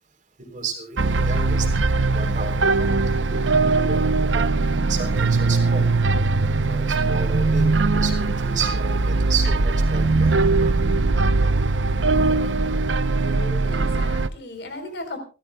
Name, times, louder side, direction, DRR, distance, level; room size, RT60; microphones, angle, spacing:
voice 1, 0.4-5.9 6.4-10.8 12.1-12.3, right 4 dB, 45° right, 5 dB, 3.6 m, -33 dB
sound 1, 1.0-14.3, right 3 dB, 85° right, 0.7 m, -20 dB
voice 2, 13.2-15.2, left 2 dB, 65° left, 7 dB, 4.0 m, -36 dB
28.0 x 13.5 x 2.3 m, 0.33 s
head